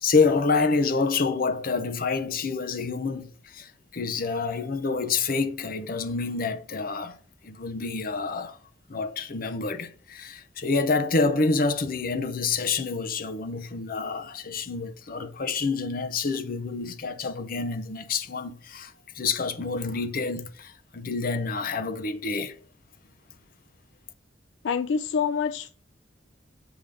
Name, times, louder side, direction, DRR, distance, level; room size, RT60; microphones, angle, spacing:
voice 1, 0.0-7.2 7.4-8.6 8.9-22.5, left 4 dB, 50° left, 0.7 m, -27 dB
voice 2, 24.6-25.7, left 6 dB, 75° left, 0.3 m, -26 dB
7.1 x 3.5 x 5.2 m
head